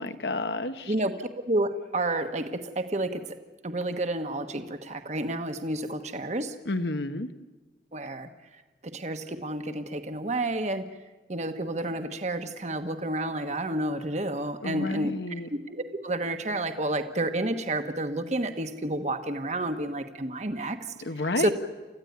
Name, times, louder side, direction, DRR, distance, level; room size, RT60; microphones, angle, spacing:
voice 1, 0.0-0.9 6.7-7.3 14.6-15.5 21.0-21.5, left 2 dB, 75° left, 9 dB, 1.3 m, -30 dB
voice 2, 0.9-3.4 3.6-6.5 7.9-8.3 8.8-10.8 11.3-20.8 21.4-21.5, right 1 dB, 40° right, 7 dB, 1.3 m, -30 dB
29.5 x 14.5 x 9.5 m, 1.2 s
head